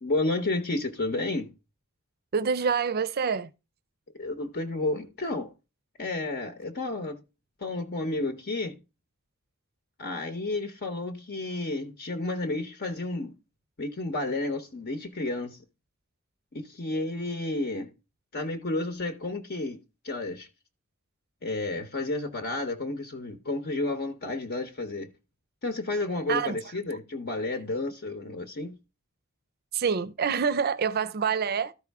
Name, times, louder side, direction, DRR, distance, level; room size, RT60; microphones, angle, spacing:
voice 1, 0.0-1.5 4.1-5.5 6.0-7.2 7.6-8.8 10.0-13.3 13.8-15.6 16.5-17.9 18.3-19.8 20.0-20.5 21.4-25.1 25.6-28.7, left 2 dB, 50° left, 0.9 m, -31 dB
voice 2, 2.3-3.5 26.3-26.6 29.7-31.7, right 6 dB, 50° right, 0.5 m, -26 dB
13.0 x 4.8 x 3.5 m
head